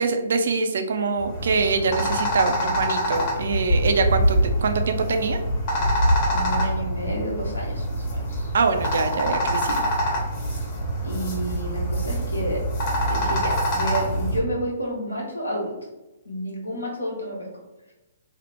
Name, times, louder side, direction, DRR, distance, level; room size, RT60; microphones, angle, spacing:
voice 1, 0.0-5.4 8.5-9.8, right 4 dB, 60° right, 6 dB, 0.4 m, -24 dB
sound 1, 1.2-14.4, equal, 35° left, 1.0 m, -25 dB
voice 2, 6.2-8.5 10.5-10.6 11.0-12.6 13.1-15.7 16.2-17.5, equal, 85° left, -3 dB, 1.1 m, -30 dB
2.9 x 2.0 x 3.2 m, 1.0 s
figure-of-eight pair, 125°, 0 cm